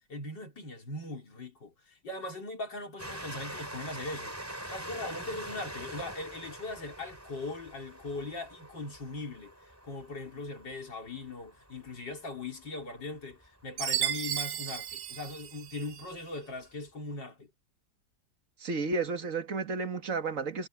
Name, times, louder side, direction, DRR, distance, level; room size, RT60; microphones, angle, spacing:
voice 1, 0.1-4.3 4.7-9.5 9.8-17.5, left 2 dB, 85° left, 5.2 m, -40 dB
Train, 3.0-14.2 14.9-15.0 15.2-15.3, right 1 dB, 10° right, 3.8 m, -45 dB
Chime, 13.8-16.1, right 10 dB, 85° right, 1.7 m, -34 dB
voice 2, 18.6-20.7, right 4 dB, 45° right, 2.3 m, -32 dB
omnidirectional pair, 1.9 m